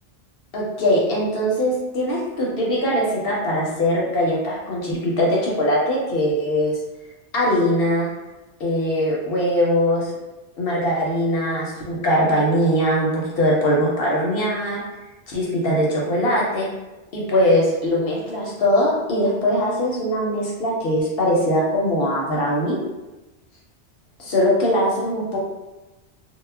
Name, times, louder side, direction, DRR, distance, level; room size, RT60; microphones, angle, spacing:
voice 1, 0.5-6.7 7.3-8.1 8.6-10.1 10.6-14.8 15.3-16.7 17.1-22.8 24.2-25.4, equal, 60° left, -3 dB, 0.7 m, -21 dB
2.2 x 2.0 x 3.2 m, 1.1 s
omnidirectional pair, 1.2 m